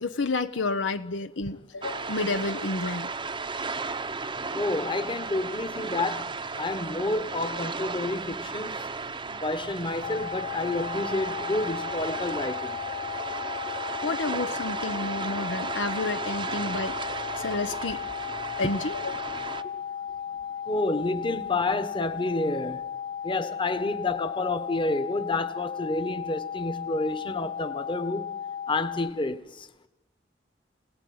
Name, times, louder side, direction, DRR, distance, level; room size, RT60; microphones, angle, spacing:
voice 1, 0.0-3.1 9.3-9.4 14.0-17.0 17.4-18.1 18.6-19.5, left 3 dB, 75° left, 0.9 m, -30 dB
sound 1, 1.8-19.6, right 4 dB, 25° right, 0.9 m, -35 dB
voice 2, 4.5-6.3 6.6-8.8 9.4-12.8 20.7-22.8 23.2-28.3 28.7-29.7, left 2 dB, 25° left, 1.4 m, -29 dB
sound 2, 10.0-29.1, left 8 dB, 50° left, 2.1 m, -35 dB
27.5 x 18.5 x 9.6 m
head